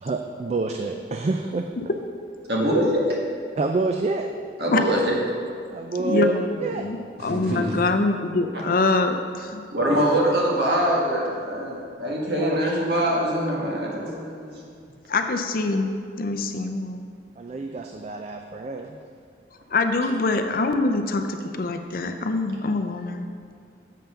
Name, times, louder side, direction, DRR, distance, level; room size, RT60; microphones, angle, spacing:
voice 1, 0.0-1.7 3.6-4.3 5.7-6.3 6.6-6.9 12.0-12.1 12.4-12.6 17.4-19.0, right 3 dB, 35° right, 4 dB, 0.3 m, -27 dB
voice 2, 2.5-3.2 4.6-5.2 7.2-7.8 8.5-8.6 9.7-14.8, equal, 60° right, -3 dB, 1.6 m, -24 dB
voice 3, 6.0-9.6 15.1-17.0 19.7-23.3, left 3 dB, 50° left, 7 dB, 0.5 m, -24 dB
7.4 x 5.6 x 5.7 m, 2.2 s
head